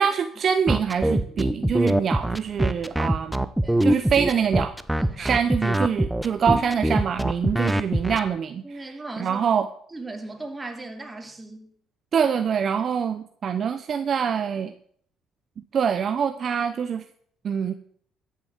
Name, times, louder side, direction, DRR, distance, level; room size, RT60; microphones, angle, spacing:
voice 1, 0.0-3.5 3.8-4.7 5.2-9.7 12.1-14.7 15.7-17.0 17.4-17.7, right 7 dB, 50° right, 10 dB, 0.8 m, -25 dB
sound 1, 0.7-8.2, right 1 dB, 5° right, 0.8 m, -22 dB
voice 2, 5.0-5.4 6.3-6.4 7.6-7.8 8.6-9.4 9.9-11.7, right 2 dB, 20° right, 4 dB, 2.9 m, -38 dB
13.5 x 7.7 x 7.3 m, 0.63 s
supercardioid pair, 85°, 0 cm